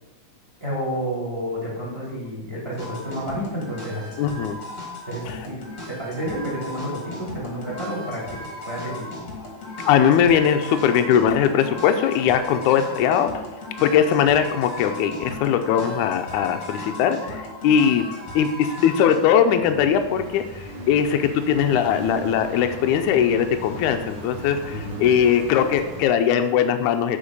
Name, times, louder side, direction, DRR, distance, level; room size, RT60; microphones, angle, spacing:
voice 1, 0.6-4.2 5.0-9.2 24.7-25.1, equal, 10° right, -6 dB, 2.9 m, -30 dB
sound 1, 2.8-19.2, left 2 dB, 35° left, 2.0 m, -37 dB
voice 2, 4.2-4.6 5.3-5.5 9.8-13.5 13.8-18.1 18.4-27.2, left 8 dB, 80° left, 7 dB, 2.0 m, -20 dB
sound 2, 19.6-26.0, right 1 dB, 50° right, 2.2 m, -38 dB
8.7 x 5.1 x 5.4 m, 1.0 s
omnidirectional pair, 3.7 m